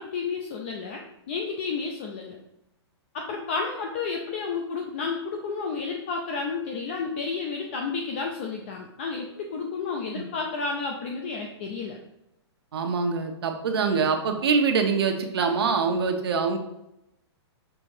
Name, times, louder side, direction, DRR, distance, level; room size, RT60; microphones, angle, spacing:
voice 1, 0.0-2.4 3.1-12.0, left 4 dB, 25° left, 2 dB, 0.4 m, -31 dB
voice 2, 12.7-16.6, right 5 dB, 60° right, 4 dB, 1.1 m, -24 dB
6.0 x 3.7 x 4.9 m, 0.85 s
hypercardioid pair, 180°, 15 cm